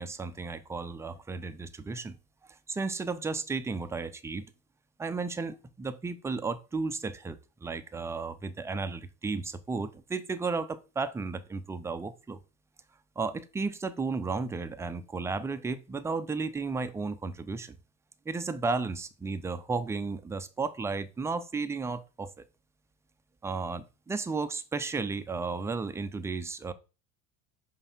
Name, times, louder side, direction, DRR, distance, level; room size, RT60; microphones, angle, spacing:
voice 1, 0.0-2.2 2.7-4.5 5.0-12.4 13.2-17.8 18.3-22.3 23.4-26.7, right 4 dB, 5° right, 0.4 m, -34 dB
5.5 x 4.6 x 4.2 m
hypercardioid pair, 75°, 46 cm